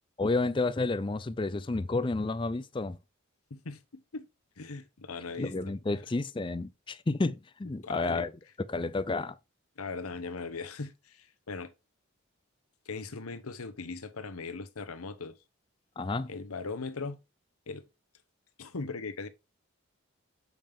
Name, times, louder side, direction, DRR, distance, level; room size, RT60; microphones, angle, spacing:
voice 1, 0.2-3.0 5.4-8.3 8.7-9.4 16.0-16.3, left 3 dB, 20° left, 0.4 m, -30 dB
voice 2, 3.5-4.3 4.6-5.5 7.8-8.3 9.8-11.7 12.9-15.3 16.3-17.2 17.7-17.8 18.6-19.3, left 4 dB, 90° left, 0.9 m, -39 dB
7.3 x 5.3 x 3.5 m
head